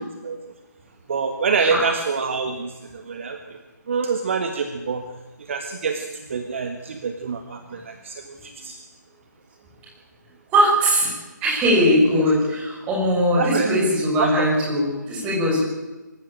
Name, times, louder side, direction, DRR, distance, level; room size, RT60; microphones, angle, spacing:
voice 1, 1.1-3.4 3.9-5.0 5.5-8.8 12.1-12.3 13.4-13.7 14.2-14.7, right 5 dB, 40° right, 7 dB, 1.6 m, -26 dB
voice 2, 10.5-11.1 11.4-15.6, equal, 15° right, -3 dB, 6.4 m, -20 dB
24.0 x 14.5 x 8.9 m, 1.2 s
figure-of-eight pair, 150°, 10 cm